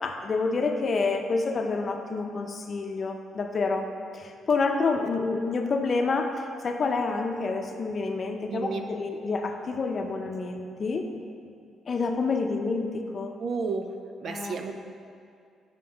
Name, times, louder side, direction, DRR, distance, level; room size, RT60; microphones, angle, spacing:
voice 1, 0.0-3.9 4.1-11.1 11.9-13.3 14.3-14.7, left 4 dB, 45° left, 4 dB, 0.6 m, -28 dB
voice 2, 8.5-8.9 13.4-13.9 14.2-14.7, right 4 dB, 55° right, 5 dB, 0.4 m, -31 dB
5.7 x 5.2 x 5.2 m, 2.3 s
cardioid pair, 90°, 0 cm